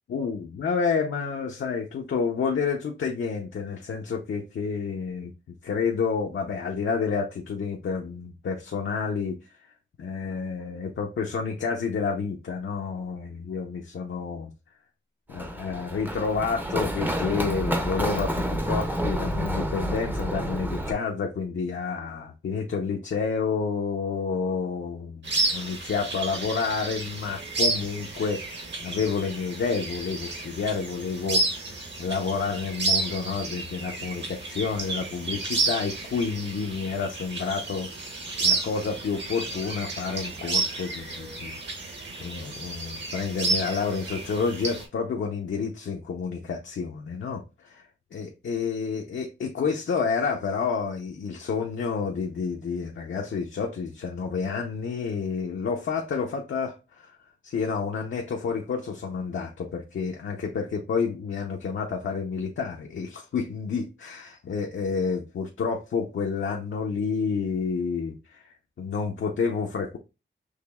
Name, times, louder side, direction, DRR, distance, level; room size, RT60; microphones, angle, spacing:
voice 1, 0.1-5.3 5.6-9.7 10.0-14.5 15.3-57.2 57.4-70.0, left 5 dB, 80° left, 0.7 m, -29 dB
Run, 15.3-20.9, equal, 10° right, 0.5 m, -29 dB
sound 1, 25.2-44.8, right 3 dB, 65° right, 1.5 m, -31 dB
6.4 x 3.0 x 2.3 m
wide cardioid pair, 170°, 20 cm